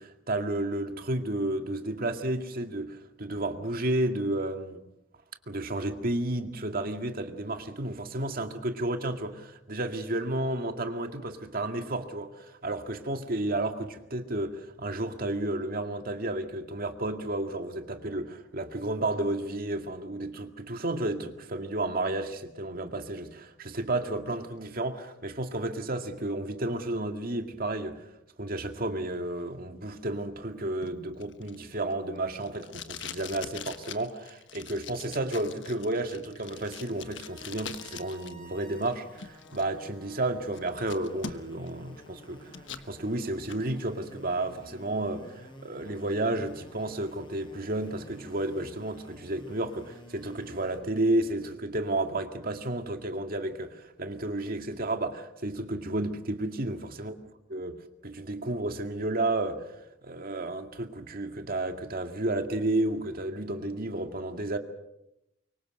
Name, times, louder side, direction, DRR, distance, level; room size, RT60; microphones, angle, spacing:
voice 1, 0.0-4.8 5.5-28.0 28.4-42.5 42.9-57.1 57.5-57.7 58.0-59.7 60.0-64.6, right 2 dB, 50° right, 2.1 m, -32 dB
Packing tape duct tape, 30.8-38.3 38.6-39.6 40.1-40.2 40.5-41.7 42.1-42.9 43.3-43.6, left 7 dB, 70° left, 1.3 m, -43 dB
sound 1, 36.5-50.8, equal, 25° left, 5.9 m, -52 dB
25.0 x 23.5 x 6.6 m
head